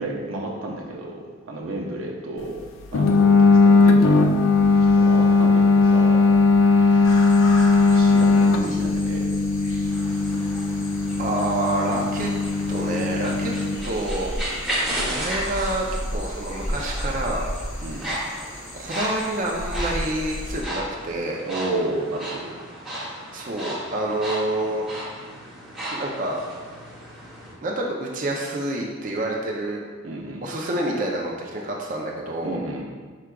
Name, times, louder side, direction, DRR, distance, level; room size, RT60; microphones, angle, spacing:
voice 1, 0.0-2.6 2.9-4.3 4.8-6.3 6.8-9.3 17.8-18.1 21.5-22.5 30.0-30.4 32.4-32.8, right 2 dB, 90° right, -1 dB, 0.7 m, -32 dB
sound 1, 2.9-13.7, left 3 dB, 80° left, 0.4 m, -18 dB
sound 2, 7.0-20.6, equal, 40° left, 0.9 m, -35 dB
sound 3, 9.8-27.5, right 1 dB, 5° right, 1.0 m, -34 dB
voice 2, 11.2-12.3 12.7-13.5 13.8-14.3 15.1-17.4 17.9-18.1 18.7-21.4 23.3-24.8 25.9-26.4 27.6-29.8 30.4-32.6, right 1 dB, 40° right, -1 dB, 0.4 m, -28 dB
4.7 x 4.7 x 2.3 m, 1.5 s
head